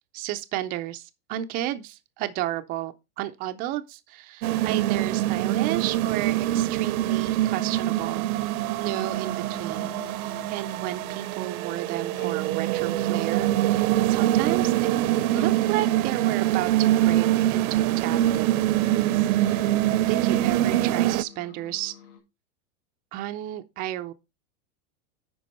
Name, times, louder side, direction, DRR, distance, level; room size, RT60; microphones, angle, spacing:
voice 1, 0.1-8.3 8.7-14.9 15.3-18.5 19.1-19.7 20.1-21.9 23.1-24.1, right 14 dB, 25° right, 0.3 m, -32 dB
sound 1, 4.4-21.2, right 14 dB, 70° right, 0.6 m, -24 dB
sound 2, 8.8-22.2, left 7 dB, 50° left, 3.9 m, -48 dB
10.5 x 4.6 x 4.2 m
supercardioid pair, 130°, 44 cm